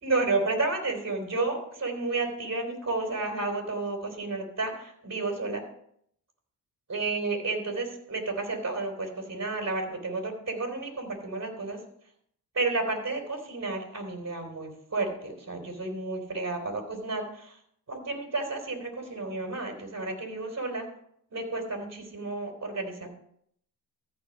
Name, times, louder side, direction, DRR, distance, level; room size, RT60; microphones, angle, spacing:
voice 1, 0.0-5.6 6.9-11.8 12.6-17.6 17.9-20.9 21.3-23.1, right 3 dB, 40° right, 3 dB, 3.4 m, -31 dB
14.0 x 4.7 x 5.2 m, 0.69 s
supercardioid pair, 60°, 40 cm